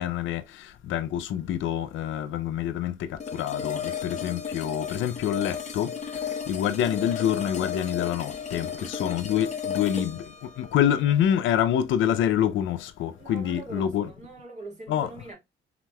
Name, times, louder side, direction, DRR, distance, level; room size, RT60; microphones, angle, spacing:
voice 1, 0.0-5.9 6.5-14.1 14.9-15.1, left 10 dB, 75° left, 0.5 m, -27 dB
sound 1, 3.2-12.2, left 7 dB, 35° left, 0.9 m, -34 dB
voice 2, 8.5-9.0 13.2-15.3, right 3 dB, 35° right, 1.9 m, -43 dB
4.0 x 3.0 x 2.2 m
cardioid pair, 90°, 20 cm